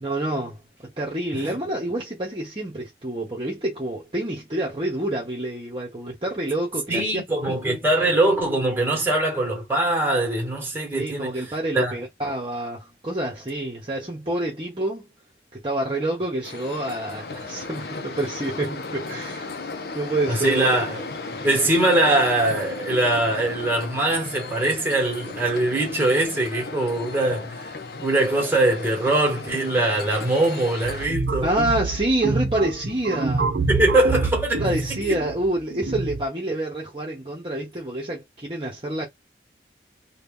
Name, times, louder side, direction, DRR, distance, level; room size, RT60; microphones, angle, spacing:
voice 1, 0.0-0.6 1.0-7.2 7.6-7.8 10.9-15.1 15.6-19.5 19.9-20.7 31.4-33.4 34.6-39.1, right 1 dB, 30° right, 0.9 m, -27 dB
voice 2, 6.9-11.5 11.7-12.0 20.3-21.0 21.4-27.7 28.0-31.5 33.7-34.7 35.1-35.2, right 2 dB, 10° right, 1.2 m, -22 dB
sound 1, 16.4-31.1, left 3 dB, 60° left, 0.6 m, -35 dB
sound 2, 30.8-36.2, right 3 dB, 75° right, 0.6 m, -27 dB
2.8 x 2.3 x 3.6 m
head